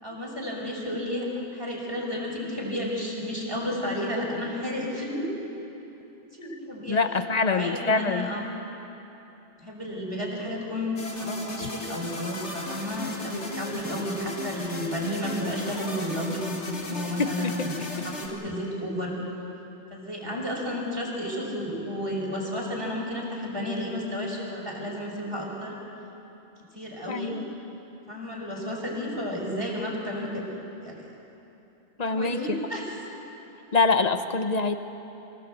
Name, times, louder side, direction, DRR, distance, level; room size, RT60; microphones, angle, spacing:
voice 1, 0.0-5.3 6.3-7.0 7.4-8.4 9.6-19.1 19.9-25.8 26.7-27.3 28.1-30.4 30.8-31.1 32.2-32.8, left 1 dB, 20° right, -4 dB, 5.3 m, -32 dB
voice 2, 6.9-8.3 11.6-11.7 17.2-18.0 27.1-27.4 32.0-32.6 33.7-34.8, left 4 dB, 40° left, 9 dB, 1.0 m, -25 dB
sound 1, 11.0-18.3, left 2 dB, 85° left, 2.4 m, -37 dB
26.0 x 16.0 x 8.0 m, 3.0 s
omnidirectional pair, 1.1 m